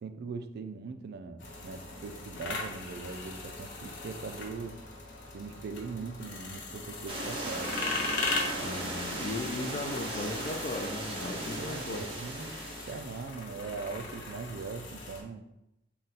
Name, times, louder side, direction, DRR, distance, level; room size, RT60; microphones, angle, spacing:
voice 1, 0.0-4.8 5.3-7.8 11.5-12.5 12.9-15.4, right 4 dB, 55° right, 8 dB, 0.3 m, -40 dB
sound 1, 1.4-15.2, left 2 dB, 70° left, 0.7 m, -39 dB
sound 2, 7.1-13.2, right 1 dB, 30° right, 0.7 m, -37 dB
voice 2, 8.6-12.1, left 2 dB, 40° left, 4 dB, 0.3 m, -37 dB
3.8 x 2.2 x 4.0 m, 0.89 s
head